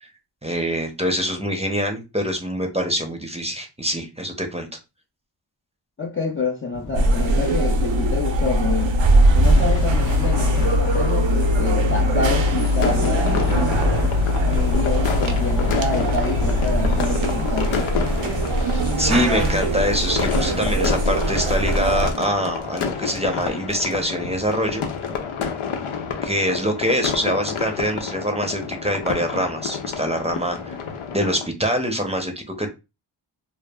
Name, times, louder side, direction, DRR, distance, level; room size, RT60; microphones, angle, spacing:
voice 1, 0.4-4.7 18.7-24.8 26.2-30.8 31.1-32.7, equal, 15° right, 0.6 m, -24 dB
voice 2, 6.0-8.9 9.3-13.6 14.4-17.8, left 3 dB, 25° left, 0.5 m, -27 dB
sound 1, 6.7-25.2, left 2 dB, 50° left, 0.8 m, -34 dB
sound 2, 6.9-22.1, equal, 65° right, 0.7 m, -20 dB
sound 3, 12.2-31.5, left 6 dB, 80° left, 0.6 m, -29 dB
2.2 x 2.0 x 3.4 m
cardioid pair, 45°, 49 cm